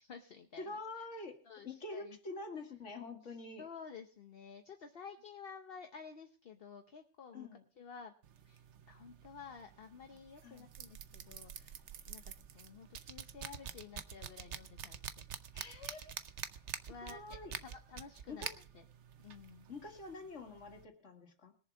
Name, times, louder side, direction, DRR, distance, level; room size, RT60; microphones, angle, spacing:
voice 1, 0.0-0.7 1.5-2.2 3.6-7.5 7.8-8.1 8.4-15.0 16.9-18.8 19.2-19.7, left 6 dB, 55° left, 5 dB, 1.1 m, -52 dB
voice 2, 0.6-3.7 7.3-7.6 10.4-10.7 15.5-16.1 17.0-17.6 18.3-18.6 19.7-21.5, left 3 dB, 80° left, 4 dB, 2.2 m, -46 dB
sound 1, 8.2-20.8, right 8 dB, 70° right, 1.1 m, -48 dB
21.5 x 7.2 x 4.6 m, 0.40 s
omnidirectional pair, 1.2 m